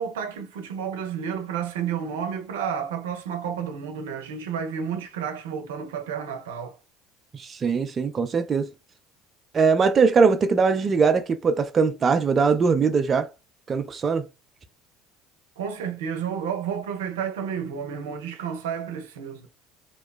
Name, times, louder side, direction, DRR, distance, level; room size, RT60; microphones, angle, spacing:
voice 1, 0.0-6.8 15.6-19.5, right 7 dB, 80° right, 0.6 m, -31 dB
voice 2, 7.3-8.7 9.5-13.3 13.7-14.3, right 5 dB, 35° right, 0.3 m, -21 dB
2.8 x 2.1 x 2.2 m
hypercardioid pair, 70°, 0 cm